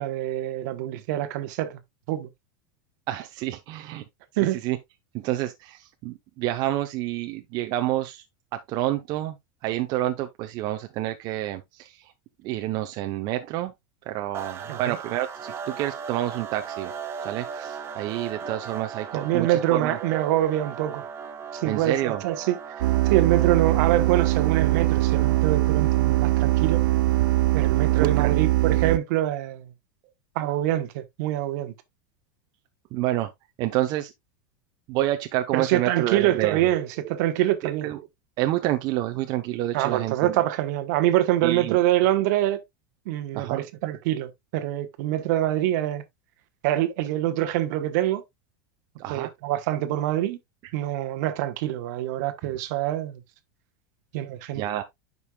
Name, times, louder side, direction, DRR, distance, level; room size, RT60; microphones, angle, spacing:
voice 1, 0.0-1.8 2.1-2.3 4.4-4.6 14.7-15.0 19.1-21.0 21.5-22.6 23.1-26.8 27.5-29.7 30.3-31.7 35.5-37.9 39.7-42.6 43.1-46.0 46.6-48.2 49.1-50.4 50.7-53.2 54.1-54.6, right 13 dB, 60° right, 1.1 m, -25 dB
voice 2, 3.1-4.0 4.5-4.8 5.1-8.2 8.7-9.4 9.6-12.1 12.4-13.7 14.1-16.9 17.2-20.4 21.6-22.2 28.0-28.3 28.7-28.8 32.9-33.3 33.6-34.1 34.9-37.1 37.6-38.0 38.4-40.4 41.4-41.8 43.3-43.6 49.0-49.3 54.5-54.8, right 14 dB, 45° right, 0.8 m, -28 dB
sound 1, 14.3-28.5, right 6 dB, 25° right, 1.2 m, -38 dB
sound 2, 22.8-29.0, right 17 dB, 85° right, 0.4 m, -21 dB
9.6 x 5.5 x 2.3 m
supercardioid pair, 145°, 10 cm